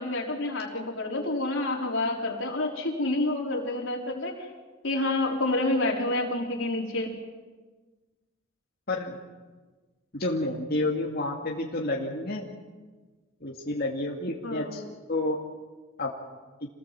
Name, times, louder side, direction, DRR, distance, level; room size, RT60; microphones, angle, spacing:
voice 1, 0.0-4.5 4.8-7.2 14.4-14.8, left 2 dB, 65° left, 0 dB, 4.6 m, -28 dB
voice 2, 10.1-12.5 13.4-14.8 15.1-15.4 16.0-16.1, left 2 dB, 50° left, -1 dB, 2.4 m, -29 dB
27.5 x 19.5 x 7.7 m, 1.3 s
head